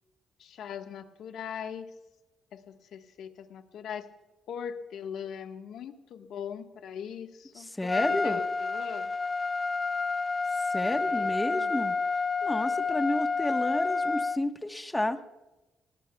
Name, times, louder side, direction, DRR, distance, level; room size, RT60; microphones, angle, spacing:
voice 1, 0.4-1.9 2.5-4.1 4.5-9.1 10.8-11.7, left 8 dB, 75° left, 5 dB, 1.4 m, -40 dB
voice 2, 7.6-8.4 10.7-11.9 12.4-15.2, left 1 dB, 10° left, 7 dB, 1.2 m, -31 dB
Trumpet, 7.9-14.4, left 4 dB, 30° left, 0.4 m, -29 dB
21.0 x 19.0 x 2.3 m, 1.1 s
cardioid pair, 90°, 0 cm